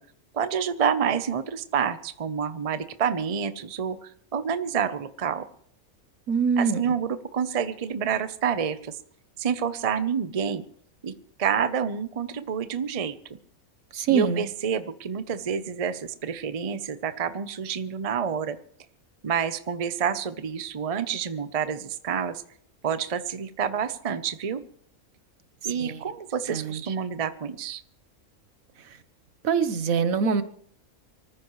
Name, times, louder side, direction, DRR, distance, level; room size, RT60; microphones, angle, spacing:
voice 1, 0.3-5.4 6.6-9.0 9.4-10.6 11.0-11.1 11.4-13.1 14.1-18.6 19.2-22.4 22.8-24.6 25.6-27.8, right 7 dB, 35° right, 12 dB, 0.7 m, -28 dB
voice 2, 6.3-6.8 13.9-14.4 25.6-26.0 26.5-26.9 28.8-29.0 29.4-30.4, right 6 dB, 75° right, 12 dB, 1.4 m, -24 dB
25.0 x 14.5 x 3.1 m, 0.62 s
omnidirectional pair, 1.5 m